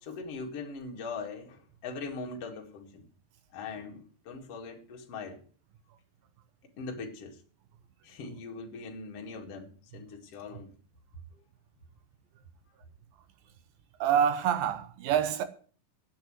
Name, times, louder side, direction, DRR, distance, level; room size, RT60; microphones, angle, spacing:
voice 1, 0.0-3.0 3.5-5.4 6.8-7.4 8.0-10.7, left 4 dB, 45° left, 2.7 m, -41 dB
voice 2, 14.0-15.4, right 9 dB, 75° right, 2.6 m, -26 dB
9.6 x 9.3 x 7.8 m
omnidirectional pair, 4.4 m